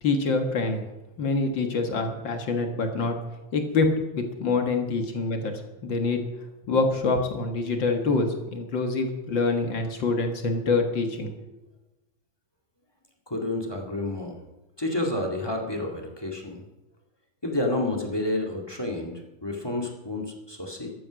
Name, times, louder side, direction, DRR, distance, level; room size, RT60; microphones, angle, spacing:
voice 1, 0.0-0.8 1.2-3.2 3.5-5.5 5.8-6.2 6.7-11.3, left 3 dB, 50° left, 4 dB, 1.5 m, -25 dB
voice 2, 13.3-14.4 14.8-16.6 17.4-20.9, left 2 dB, 15° left, 2 dB, 1.0 m, -30 dB
14.0 x 11.0 x 6.3 m, 1.0 s
omnidirectional pair, 4.0 m